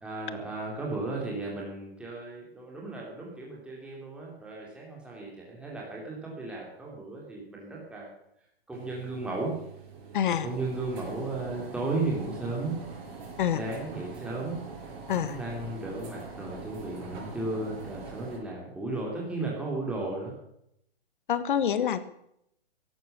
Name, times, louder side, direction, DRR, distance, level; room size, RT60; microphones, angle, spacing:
voice 1, 0.0-8.1 8.7-9.6 10.4-12.8 13.5-14.5 15.1-20.3, right 2 dB, 5° right, -3 dB, 3.2 m, -35 dB
sound 1, 8.7-18.4, right 4 dB, 30° right, 6.1 m, -44 dB
voice 2, 10.1-10.5 13.4-13.6 15.1-15.4 21.3-22.0, left 9 dB, 55° left, 14 dB, 1.5 m, -26 dB
15.0 x 11.5 x 6.9 m, 0.76 s
hypercardioid pair, 150°, 31 cm